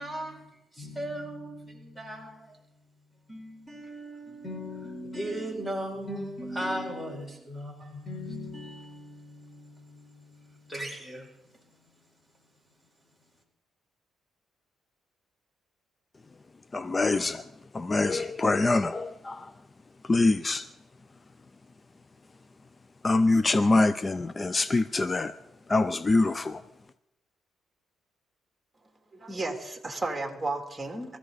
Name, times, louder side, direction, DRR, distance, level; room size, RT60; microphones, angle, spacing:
voice 1, 0.0-2.6 3.3-11.9, equal, 10° left, 4.7 m, -38 dB
voice 2, 16.7-17.4 17.7-19.5 20.1-20.7 23.0-25.3 25.7-26.6, left 2 dB, 25° left, 0.6 m, -24 dB
voice 3, 29.1-31.2, right 2 dB, 10° right, 3.1 m, -33 dB
23.5 x 14.5 x 4.1 m
cardioid pair, 90°, 0 cm